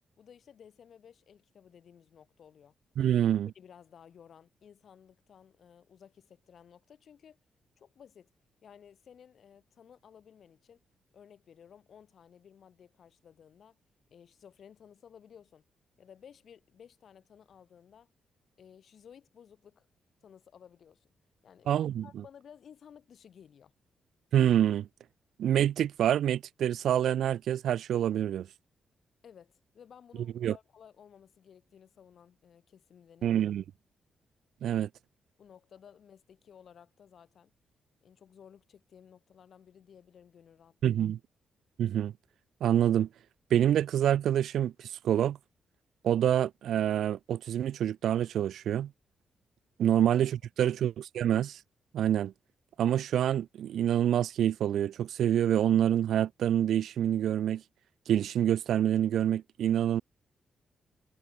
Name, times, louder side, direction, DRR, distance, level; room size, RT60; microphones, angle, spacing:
voice 1, 0.2-2.7 3.6-7.4 7.8-8.3 8.6-10.8 11.1-13.8 14.1-15.6 16.0-18.1 18.6-19.9 20.2-21.1 21.4-21.7 22.0-23.7 29.2-33.3 35.4-37.5 38.0-41.1 50.0-50.1 50.6-50.8, left 8 dB, 60° left, 3.4 m, -56 dB
voice 2, 3.0-3.5 21.7-22.2 24.3-24.9 25.4-28.5 30.4-30.6 33.2-33.6 34.6-34.9 40.8-41.2 41.8-42.1 42.6-43.1 43.5-45.4 46.0-48.9 49.8-51.6 51.9-52.3 52.8-57.6 58.1-60.0, right 10 dB, 80° right, 0.3 m, -27 dB
cardioid pair, 130°, 0 cm